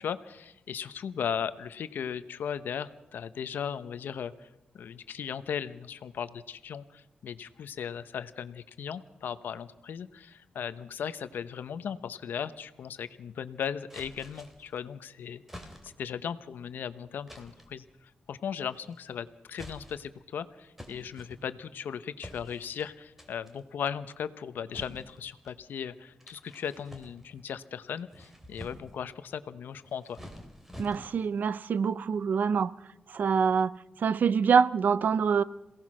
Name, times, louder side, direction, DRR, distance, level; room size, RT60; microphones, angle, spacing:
voice 1, 0.0-4.5 4.7-30.2, left 8 dB, 90° left, 1.0 m, -37 dB
sound 1, 13.9-14.8 15.5-16.1 17.3-17.8 18.7-19.1 19.5-20.2 20.8-21.7 22.2-22.9 23.2-23.6 24.7-25.6 26.2-27.5 27.9-29.0 29.8-31.3, equal, 10° right, 3.3 m, -48 dB
voice 2, 30.8-32.7 33.1-35.4, right 6 dB, 65° right, 0.7 m, -25 dB
27.0 x 17.5 x 6.3 m
wide cardioid pair, 115°, 3 cm